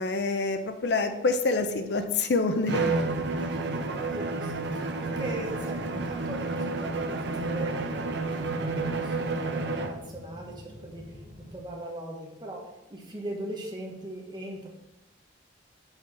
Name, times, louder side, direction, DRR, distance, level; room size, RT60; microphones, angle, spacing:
voice 1, 0.0-2.9 3.4-3.5, left 3 dB, 65° left, 8 dB, 0.5 m, -27 dB
Bowed string instrument, 2.7-10.1, right 3 dB, 65° right, 0.5 m, -30 dB
sound 1, 3.0-11.5, equal, 45° right, 1.8 m, -47 dB
voice 2, 3.4-11.0 11.5-12.6 12.9-14.7, right 1 dB, 25° right, 0 dB, 1.1 m, -39 dB
4.8 x 4.6 x 5.6 m, 0.93 s
head